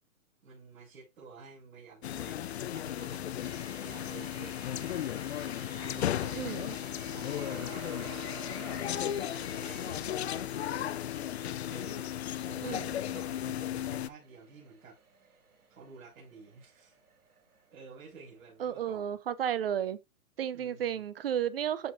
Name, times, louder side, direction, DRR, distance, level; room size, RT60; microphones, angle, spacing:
voice 1, 0.4-2.4 2.7-5.0 5.7-6.7 6.9-8.3 8.7-11.0 11.7-12.1 12.4-15.4 15.7-17.0 17.7-19.1 20.5-21.0, right 4 dB, 65° right, 6.4 m, -52 dB
sound 1, 2.0-14.1, left 11 dB, 45° left, 0.6 m, -35 dB
sound 2, 3.4-18.4 19.0-19.1, right 4 dB, 85° right, 4.5 m, -52 dB
voice 2, 6.4-6.8 12.6-12.9 18.6-20.0 20.4-21.9, right 9 dB, 40° right, 0.6 m, -33 dB
13.5 x 5.0 x 2.6 m
hypercardioid pair, 150°, 44 cm